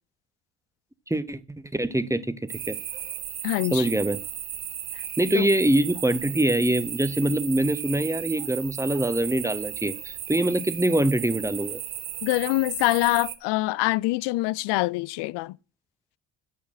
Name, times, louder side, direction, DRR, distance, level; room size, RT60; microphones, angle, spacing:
voice 1, 1.1-1.4 1.7-2.8 3.7-4.2 5.2-11.8, right 1 dB, 5° right, 1.1 m, -24 dB
sound 1, 2.5-13.4, right 11 dB, 60° right, 1.3 m, -35 dB
voice 2, 3.4-3.9 4.9-5.0 5.3-5.5 12.2-15.6, left 20 dB, 80° left, 0.5 m, -25 dB
8.1 x 6.3 x 7.6 m
supercardioid pair, 70°, 40 cm